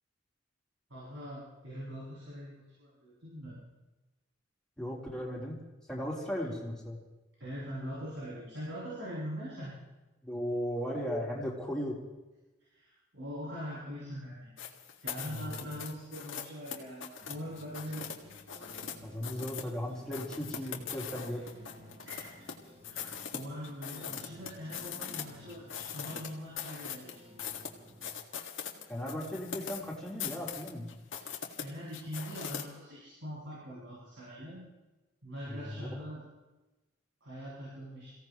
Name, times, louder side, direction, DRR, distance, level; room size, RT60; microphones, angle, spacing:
voice 1, 0.9-3.5 7.4-9.8 12.7-14.6 15.0-18.1 22.0-22.4 22.8-27.2 31.1-34.6 35.2-36.2 37.2-38.1, equal, 75° right, -8 dB, 7.2 m, -42 dB
voice 2, 4.8-5.6 5.9-7.0 10.2-12.0 15.3-15.5 19.0-21.5 28.9-30.9 35.5-35.9, equal, 5° left, -5 dB, 3.8 m, -36 dB
sound 1, 14.6-19.0 19.2-19.7 20.1-22.5 22.8-25.2 25.5-32.6, left 7 dB, 80° left, 2.0 m, -41 dB
sound 2, 17.2-28.2, equal, 30° right, 1.7 m, -55 dB
28.0 x 16.5 x 3.1 m, 1.1 s
head